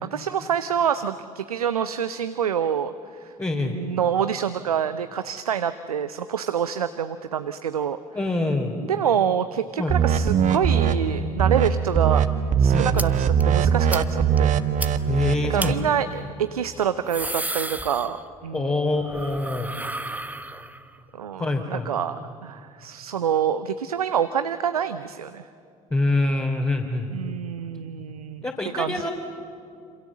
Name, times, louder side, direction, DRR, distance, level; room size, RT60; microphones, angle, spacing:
voice 1, 0.0-3.3 3.6-8.0 8.8-12.3 12.6-14.6 15.5-18.2 18.4-18.9 21.1-25.5 27.1-28.5 28.7-29.1, right 8 dB, 85° right, 12 dB, 0.6 m, -26 dB
voice 2, 3.4-3.8 8.1-8.8 9.8-10.0 12.7-13.1 15.1-16.0 18.5-19.7 21.4-21.9 25.9-27.1 28.4-29.1, left 2 dB, 15° left, -1 dB, 3.2 m, -25 dB
sound 1, 9.9-10.9 11.4-11.7 11.9-12.2 12.5-15.8, right 8 dB, 40° right, 1.5 m, -21 dB
sound 2, 13.0-13.1 13.4-13.5 13.9-14.0 14.4-14.5 14.8-14.9 15.6-15.7 16.8-18.5 18.8-21.0, right 2 dB, 10° right, 1.3 m, -32 dB
27.5 x 27.0 x 7.4 m, 2.5 s
figure-of-eight pair, 60°, 18 cm